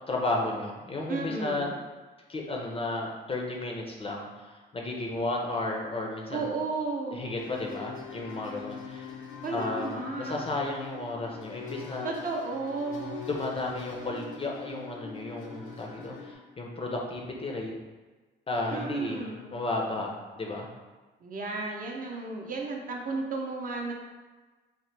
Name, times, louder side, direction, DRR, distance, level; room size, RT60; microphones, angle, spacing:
voice 1, 0.1-1.7 2.3-6.5 7.1-9.1 9.5-12.1 13.2-17.7 18.5-20.7, left 2 dB, 30° left, 0 dB, 0.5 m, -33 dB
voice 2, 1.1-1.7 6.3-7.2 9.4-10.4 12.0-13.2 18.7-19.6 21.2-23.9, right 3 dB, 45° right, 0 dB, 0.6 m, -33 dB
sound 1, 7.4-16.3, left 6 dB, 80° left, 0.5 m, -42 dB
2.9 x 2.1 x 3.2 m, 1.3 s
cardioid pair, 90°, 20 cm